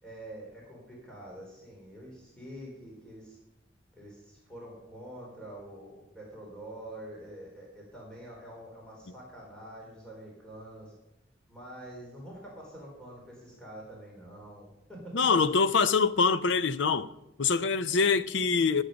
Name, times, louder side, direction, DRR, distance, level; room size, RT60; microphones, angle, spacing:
voice 1, 0.0-3.4 4.0-10.9 11.5-15.2, right 1 dB, 5° left, 3.4 m, -46 dB
voice 2, 15.1-17.1 17.4-18.8, left 5 dB, 80° left, 0.6 m, -24 dB
15.5 x 8.2 x 5.1 m
head